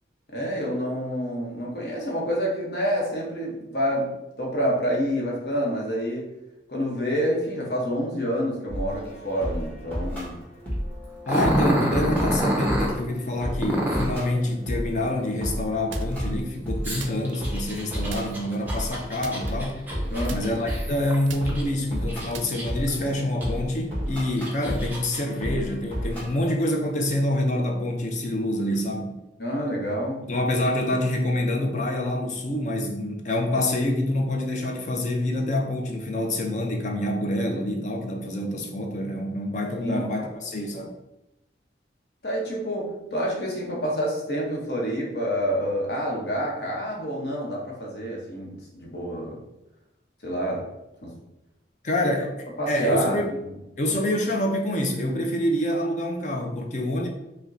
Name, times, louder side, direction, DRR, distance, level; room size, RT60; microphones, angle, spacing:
voice 1, 0.3-6.3 6.7-10.4 20.1-20.4 29.4-30.3 39.8-40.0 42.2-49.4 50.2-50.7 51.0-51.1 52.6-53.5, equal, 60° left, -2 dB, 0.9 m, -28 dB
sound 1, 8.7-26.2, equal, 10° left, 1.3 m, -33 dB
voice 2, 11.3-19.8 20.3-29.2 30.3-40.9 51.8-53.3 53.8-57.1, left 1 dB, 40° left, 3 dB, 0.5 m, -26 dB
Growling, 11.3-12.9 13.6-14.2 16.8-21.6 22.1-22.9 23.4-23.5 24.2-25.2, equal, 10° right, 0.6 m, -27 dB
sound 2, 15.9-16.4 17.0-17.8 18.1-18.6 19.2-20.0 20.2-23.0, right 5 dB, 90° right, 0.4 m, -42 dB
4.8 x 2.2 x 2.6 m, 0.91 s
head